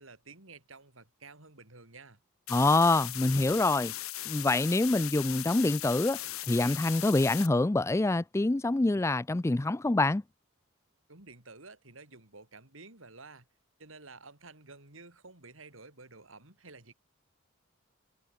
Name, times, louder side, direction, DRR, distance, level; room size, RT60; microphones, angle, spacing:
voice 1, 0.0-2.2 11.1-13.5 13.8-16.9, right 3 dB, 70° right, 4.0 m, -51 dB
sound 1, 2.5-7.5, left 15 dB, 90° left, 1.6 m, -38 dB
voice 2, 2.5-3.9 4.3-6.2 6.5-10.2, left 2 dB, 15° left, 0.3 m, -26 dB
head